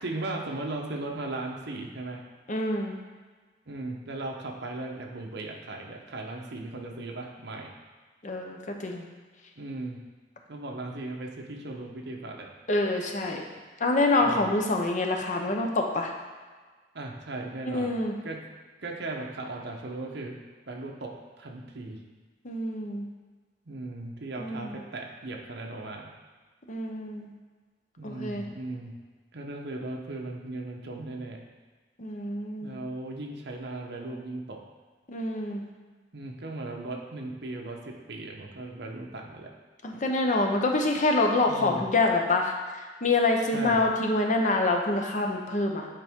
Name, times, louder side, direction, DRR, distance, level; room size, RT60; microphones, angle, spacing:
voice 1, 0.0-2.3 3.7-7.7 9.6-10.0 10.5-12.5 14.2-14.5 16.9-17.9 18.2-18.5 18.8-22.0 23.7-26.1 28.0-29.0 29.3-31.4 32.6-34.6 36.1-39.5 41.5-41.9 43.5-43.9, right 2 dB, 65° right, 1 dB, 0.9 m, -37 dB
voice 2, 2.5-2.9 8.2-9.0 12.7-13.4 13.8-16.1 17.6-18.1 22.4-23.1 24.4-24.8 26.7-27.3 28.0-28.5 32.0-32.8 35.1-35.7 39.8-45.9, left 2 dB, 45° left, 2 dB, 0.7 m, -26 dB
8.8 x 4.2 x 3.6 m, 1.4 s
head